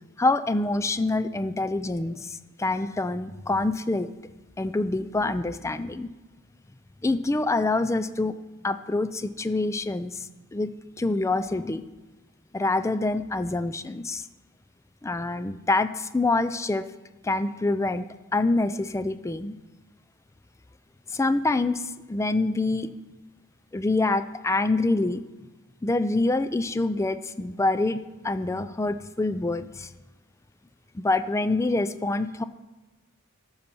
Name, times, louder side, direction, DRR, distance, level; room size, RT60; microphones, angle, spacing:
voice 1, 0.2-4.1 4.6-6.1 7.0-8.3 8.6-11.8 12.5-14.3 15.0-16.9 17.2-19.6 21.1-22.9 23.7-25.2 25.8-29.9 30.9-32.4, left 2 dB, 15° left, 13 dB, 0.3 m, -26 dB
13.5 x 5.6 x 6.1 m, 1.1 s
head